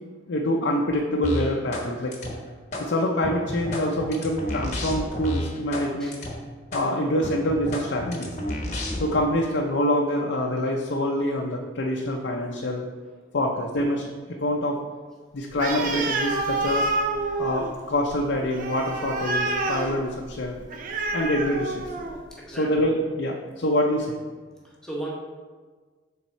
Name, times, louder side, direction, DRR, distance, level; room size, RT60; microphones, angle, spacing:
voice 1, 0.3-2.1 2.8-6.2 6.7-8.3 9.0-12.9 13.3-14.8 15.3-16.9 17.4-20.6 21.1-21.8 22.5-24.2, left 1 dB, 70° left, 0 dB, 0.5 m, -25 dB
sound 1, 1.2-2.9 3.2-5.9 6.1-6.3 6.7-6.9 7.2-9.2, left 1 dB, 40° left, 0.9 m, -30 dB
Animal, 15.5-22.3, right 2 dB, 45° right, 0.6 m, -28 dB
voice 2, 22.3-22.7 24.6-25.1, right 1 dB, 5° left, -4 dB, 0.9 m, -36 dB
7.0 x 3.6 x 4.3 m, 1.5 s
head